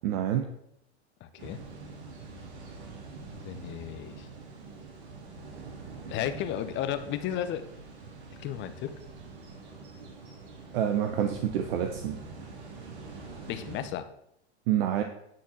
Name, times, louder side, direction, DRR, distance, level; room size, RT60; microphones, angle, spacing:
voice 1, 0.0-0.5 10.7-12.2 14.7-15.0, right 10 dB, 60° right, 6 dB, 0.9 m, -27 dB
voice 2, 1.2-1.6 3.3-4.3 6.1-7.7 8.4-8.9 13.5-14.1, left 10 dB, 35° left, 11 dB, 0.8 m, -34 dB
sound 1, 1.4-13.9, right 4 dB, 75° right, 2.8 m, -45 dB
9.6 x 4.2 x 6.0 m, 0.76 s
hypercardioid pair, 115°, 33 cm